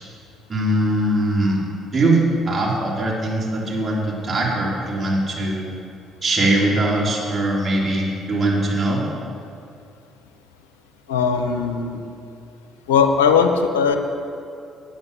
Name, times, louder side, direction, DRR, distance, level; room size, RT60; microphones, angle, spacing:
voice 1, 0.5-1.6 1.9-5.7 6.2-9.0, right 1 dB, 35° right, -4 dB, 3.3 m, -21 dB
voice 2, 11.1-12.0 12.9-14.0, left 6 dB, 90° left, 5 dB, 0.7 m, -18 dB
9.1 x 8.9 x 6.7 m, 2.5 s
hypercardioid pair, 55°, 0 cm